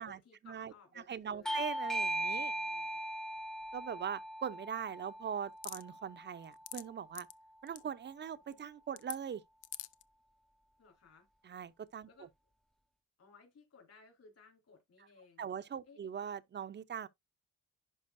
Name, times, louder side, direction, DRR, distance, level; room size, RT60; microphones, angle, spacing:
voice 1, 0.0-1.6 1.9-3.0 10.8-11.3 12.1-12.3 13.2-15.5 15.8-16.1, left 4 dB, 55° left, 4.2 m, -61 dB
voice 2, 1.1-2.5 3.7-7.3 7.6-9.4 11.4-12.1 15.4-17.1, right 8 dB, 35° right, 0.6 m, -41 dB
Bell / Doorbell, 1.5-6.6, right 1 dB, ahead, 0.6 m, -39 dB
sound 1, 5.6-5.8 6.4-6.8 7.1-7.3 7.7-7.8 9.0-9.2 9.6-10.0, left 15 dB, 85° left, 0.5 m, -43 dB
11.0 x 4.4 x 2.6 m
cardioid pair, 90°, 30 cm